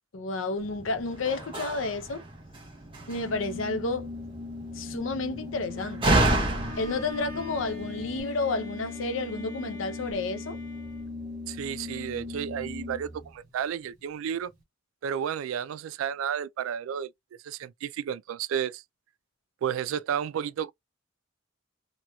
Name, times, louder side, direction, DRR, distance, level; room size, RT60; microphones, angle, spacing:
voice 1, 0.1-2.2 3.1-4.1 4.7-6.1 6.8-10.6, left 3 dB, 75° left, 0.6 m, -31 dB
Slam, 0.6-8.2, right 2 dB, 25° right, 0.7 m, -31 dB
Organ, 3.0-13.3, left 3 dB, 45° right, 1.3 m, -39 dB
Bowed string instrument, 6.6-11.6, left 1 dB, 20° left, 1.4 m, -46 dB
voice 2, 11.5-14.5 15.0-17.1 17.4-18.8 19.6-20.7, right 8 dB, 90° right, 0.3 m, -32 dB
2.8 x 2.8 x 2.2 m
head